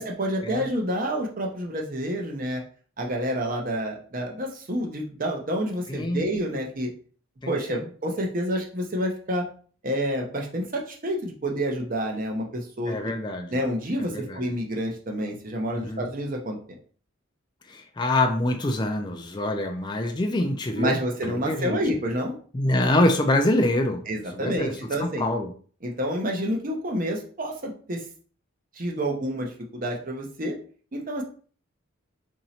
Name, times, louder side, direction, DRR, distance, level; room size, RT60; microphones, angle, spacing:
voice 1, 0.0-2.6 3.0-6.9 7.5-9.5 9.8-13.0 13.5-16.6 20.8-22.3 24.1-25.3 25.8-28.0 28.7-30.6 30.9-31.2, equal, 40° right, 1 dB, 0.7 m, -28 dB
voice 2, 5.9-6.2 7.4-7.9 12.8-13.6 14.0-14.4 15.8-16.0 17.7-21.8 22.5-24.1 24.3-24.7 25.0-25.5, left 1 dB, 20° left, 4 dB, 0.3 m, -25 dB
2.9 x 2.7 x 4.1 m, 0.43 s
head